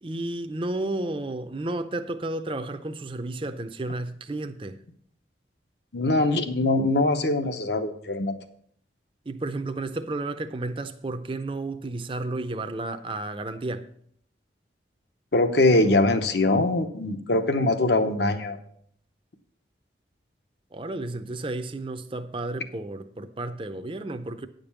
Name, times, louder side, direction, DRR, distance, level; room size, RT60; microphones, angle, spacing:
voice 1, 0.0-4.8 9.3-13.9 20.7-24.5, right 2 dB, 30° right, 0.5 m, -32 dB
voice 2, 5.9-8.3 15.3-18.6, left 2 dB, 65° left, 0.9 m, -22 dB
9.5 x 5.2 x 7.1 m
head